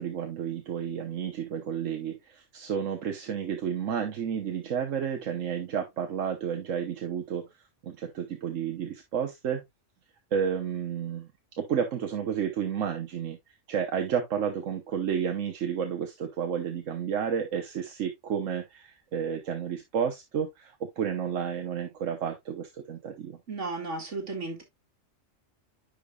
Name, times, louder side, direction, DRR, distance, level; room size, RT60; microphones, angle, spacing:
voice 1, 0.0-7.5 7.8-9.6 10.3-11.3 11.6-13.4 13.7-23.4, right 8 dB, 90° right, 1.3 m, -31 dB
voice 2, 23.5-24.6, right 3 dB, 70° right, 2.7 m, -34 dB
10.0 x 5.0 x 2.3 m
omnidirectional pair, 1.3 m